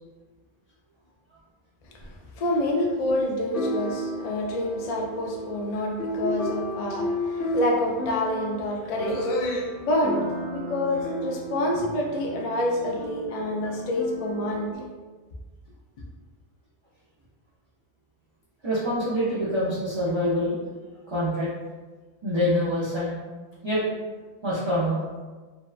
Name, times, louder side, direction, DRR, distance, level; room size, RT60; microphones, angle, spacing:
sound 1, 2.0-2.1 3.5-14.7, equal, 85° left, 0.9 m, -33 dB
voice 1, 2.0-10.2 10.5-14.7, left 1 dB, 65° left, -1 dB, 0.3 m, -27 dB
voice 2, 18.6-20.6 21.1-21.5 22.2-23.2 23.6-23.8 24.4-25.0, equal, 40° right, -10 dB, 0.4 m, -25 dB
2.7 x 2.1 x 2.3 m, 1.3 s
omnidirectional pair, 1.2 m